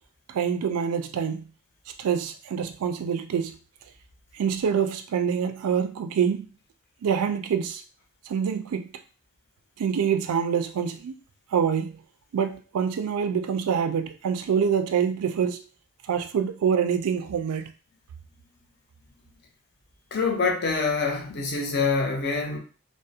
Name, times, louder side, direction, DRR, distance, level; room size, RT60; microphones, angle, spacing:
voice 1, 0.3-1.5 2.0-3.6 4.3-6.5 7.0-7.8 8.3-8.9 9.8-11.2 11.5-12.0 12.3-15.6 16.1-17.7, right 7 dB, 90° right, 0.3 m, -26 dB
voice 2, 20.1-22.6, left 4 dB, 50° left, 0.5 m, -25 dB
2.4 x 2.0 x 2.6 m
head